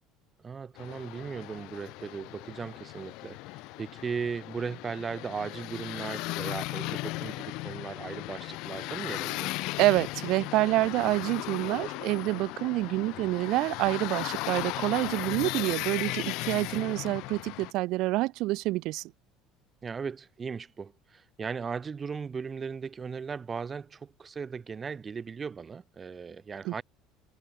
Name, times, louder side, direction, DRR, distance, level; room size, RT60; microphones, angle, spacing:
voice 1, 0.4-9.5 16.7-17.0 19.8-26.8, right 5 dB, 20° right, 1.0 m, -37 dB
sound 1, 0.8-17.7, left 22 dB, 60° left, 1.6 m, -37 dB
voice 2, 9.8-19.1 26.6-26.7, right 19 dB, 55° right, 0.6 m, -27 dB
cardioid pair, 170°, 0 cm